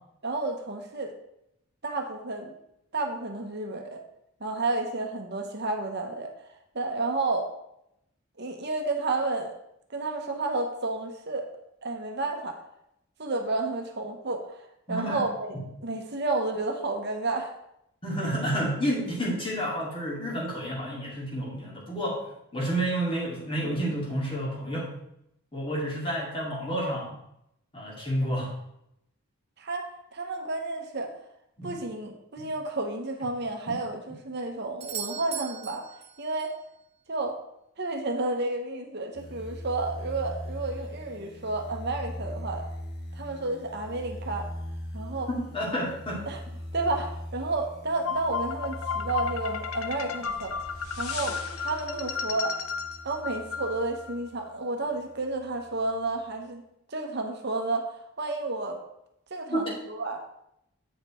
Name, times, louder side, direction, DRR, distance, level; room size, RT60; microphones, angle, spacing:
voice 1, 0.2-1.1 1.8-2.5 2.9-4.0 4.4-6.3 6.7-7.5 8.4-9.5 9.9-11.5 11.8-12.6 13.2-14.6 14.9-15.6 15.8-17.5 23.6-23.7 29.6-31.1 31.6-35.8 36.2-36.5 37.1-37.4 37.8-42.7 43.1-44.5 44.9-45.3 46.3-46.4 46.7-50.6 51.0-52.5 53.0-56.6 56.9-57.9 58.2-58.8 59.3-60.2, right 2 dB, 50° right, 4 dB, 1.1 m, -31 dB
voice 2, 14.9-15.3 18.0-22.3 22.5-24.9 25.5-27.1 27.7-28.5 31.6-31.7 32.4-32.5 45.3-46.2 59.5-59.7, equal, 25° left, -4 dB, 2.3 m, -30 dB
Doorbell, 34.8-36.6 40.7-40.8, right 9 dB, 30° right, 0.4 m, -39 dB
sound 1, 39.1-54.4 54.9-56.0, equal, 50° left, 1.9 m, -41 dB
sound 2, 48.0-54.1, left 6 dB, 80° left, 0.8 m, -33 dB
8.3 x 5.2 x 4.3 m, 0.79 s
head